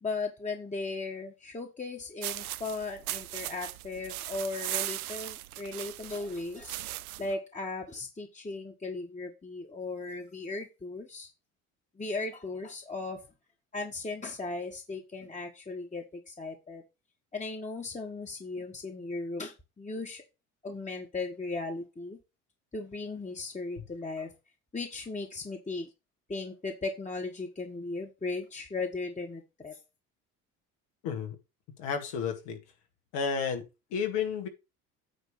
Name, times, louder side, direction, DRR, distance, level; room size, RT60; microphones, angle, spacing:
voice 1, 0.0-6.8 7.2-11.3 12.0-13.2 13.7-16.8 17.3-20.2 20.6-22.2 22.7-24.3 24.7-25.9 26.3-29.8, left 3 dB, 15° left, 1.7 m, -37 dB
sound 1, 2.2-7.3, right 15 dB, 80° right, 0.5 m, -38 dB
voice 2, 31.0-31.4 31.8-32.6 33.1-33.6 33.9-34.5, left 6 dB, 65° left, 2.2 m, -31 dB
9.3 x 3.3 x 6.7 m
hypercardioid pair, 60°, 43 cm